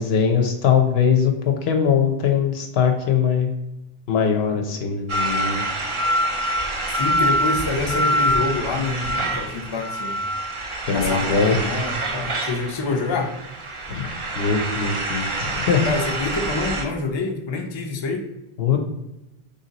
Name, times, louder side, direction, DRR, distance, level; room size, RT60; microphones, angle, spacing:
voice 1, 0.0-3.5 4.1-5.6 10.9-11.6 13.9-14.1 14.4-15.8 18.6-18.8, left 7 dB, 75° left, 4 dB, 0.9 m, -21 dB
sound 1, 5.1-16.8, right 1 dB, 40° right, 0.5 m, -25 dB
voice 2, 6.9-10.2 10.9-13.3 15.8-18.2, left 3 dB, 40° left, 3 dB, 0.4 m, -26 dB
3.5 x 2.7 x 3.9 m, 0.91 s
omnidirectional pair, 1.1 m